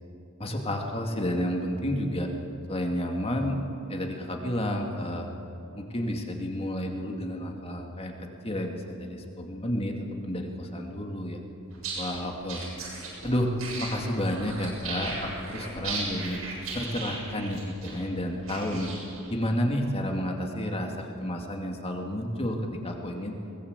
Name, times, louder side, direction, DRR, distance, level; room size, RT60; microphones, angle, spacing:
voice 1, 0.4-2.3 2.7-3.6 3.9-5.3 5.8-11.4 12.0-12.8 13.2-13.5 13.8-16.4 16.7-18.9 19.3-23.4, equal, 30° left, 2 dB, 2.5 m, -31 dB
sound 1, 11.7-19.3, right 3 dB, 85° right, 7.7 m, -37 dB
22.0 x 19.5 x 8.3 m, 2.7 s
head